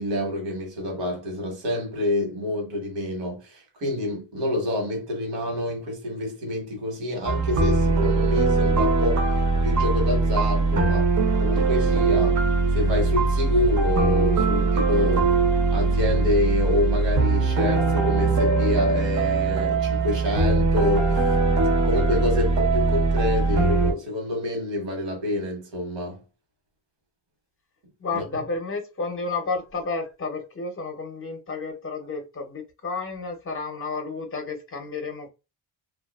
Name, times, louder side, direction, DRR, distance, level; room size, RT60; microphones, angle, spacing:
voice 1, 0.0-12.4 12.7-15.3 15.7-21.3 21.8-26.2 28.1-28.2, left 1 dB, 80° right, 1.1 m, -27 dB
sound 1, 7.3-23.9, right 3 dB, 45° right, 0.5 m, -21 dB
voice 2, 28.0-35.3, left 4 dB, 30° left, 0.6 m, -31 dB
2.6 x 2.3 x 2.2 m
wide cardioid pair, 155°, 42 cm